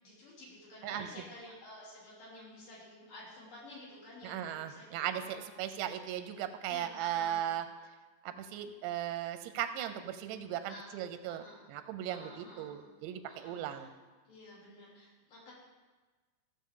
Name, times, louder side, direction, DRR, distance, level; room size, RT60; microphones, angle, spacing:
voice 1, 0.0-5.5 6.7-7.4 10.7-10.9 11.3-11.6 12.1-12.8 13.3-13.9 14.2-15.5, left 1 dB, 55° left, -7 dB, 4.7 m, -52 dB
voice 2, 4.2-7.7 8.2-13.9, right 11 dB, 90° right, 9 dB, 2.9 m, -37 dB
15.5 x 7.3 x 3.7 m, 1.3 s
omnidirectional pair, 4.9 m